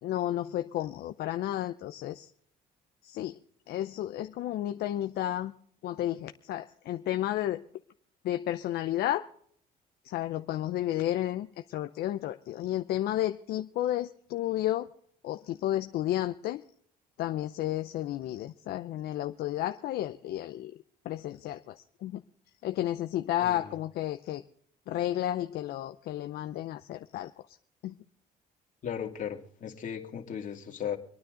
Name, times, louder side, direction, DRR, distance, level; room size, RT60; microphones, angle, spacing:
voice 1, 0.0-2.3 3.0-3.4 3.7-5.5 5.8-7.6 8.2-9.3 10.0-14.9 15.2-16.6 17.2-20.7 21.0-22.2 22.6-24.4 24.9-27.3 27.8-28.0, left 13 dB, 70° left, 8 dB, 0.7 m, -32 dB
voice 2, 23.4-23.7 28.8-31.0, left 8 dB, 50° left, 2 dB, 2.5 m, -36 dB
26.0 x 9.6 x 3.9 m, 0.62 s
cardioid pair, 110°, 17 cm